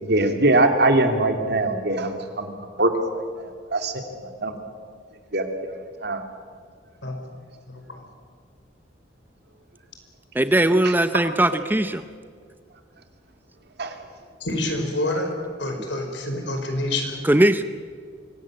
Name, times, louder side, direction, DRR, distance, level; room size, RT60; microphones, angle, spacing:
voice 1, 0.0-4.6 5.3-5.5 6.0-6.2 10.8-10.9 13.8-14.0, right 2 dB, 60° right, 6 dB, 2.7 m, -22 dB
voice 2, 7.7-8.1 14.4-15.3 15.6-17.2, left 1 dB, 70° left, 4 dB, 5.1 m, -27 dB
voice 3, 10.3-12.0 17.2-17.6, right 1 dB, 10° right, 10 dB, 0.6 m, -19 dB
24.5 x 17.5 x 8.8 m, 2.1 s
head